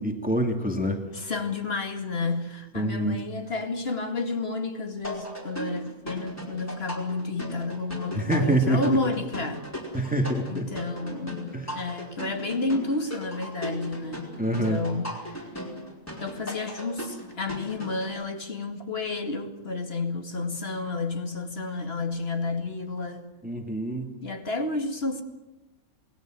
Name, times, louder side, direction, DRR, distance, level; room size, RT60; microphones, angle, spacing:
voice 1, 0.0-1.0 2.7-3.2 8.1-9.0 9.9-10.7 11.5-11.7 14.4-14.8 23.4-24.1, right 1 dB, 5° right, 2.4 m, -26 dB
voice 2, 1.1-10.1 10.5-15.5 16.2-23.3 24.2-25.2, left 3 dB, 45° left, 2.4 m, -31 dB
sound 1, 5.0-18.1, equal, 10° left, 5.0 m, -37 dB
28.0 x 20.0 x 7.7 m
omnidirectional pair, 1.4 m